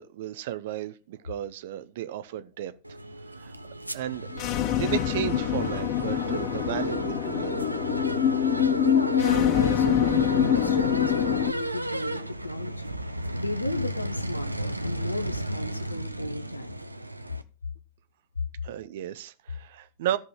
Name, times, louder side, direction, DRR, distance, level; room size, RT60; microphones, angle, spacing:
voice 1, 0.0-2.7 3.3-4.3 4.7-7.6 18.6-20.2, right 12 dB, 55° right, 0.8 m, -34 dB
sound 1, 2.8-17.4, right 1 dB, 85° right, 0.7 m, -33 dB
sound 2, 4.3-11.5, left 10 dB, 40° left, 0.7 m, -25 dB
voice 2, 8.8-12.9 13.3-16.8, left 2 dB, 85° left, 0.9 m, -34 dB
14.0 x 5.3 x 5.7 m
figure-of-eight pair, 90°, 0 cm